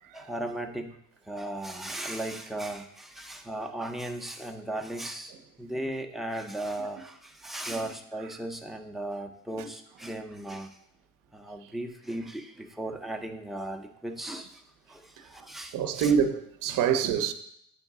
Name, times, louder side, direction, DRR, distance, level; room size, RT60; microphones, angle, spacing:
voice 1, 0.1-0.9 1.3-5.3 5.6-10.8 11.3-14.6 14.9-16.1, right 1 dB, ahead, 0.4 m, -36 dB
voice 2, 15.7-17.3, right 7 dB, 60° right, 0.6 m, -26 dB
8.0 x 3.9 x 3.6 m
cardioid pair, 110°, 36 cm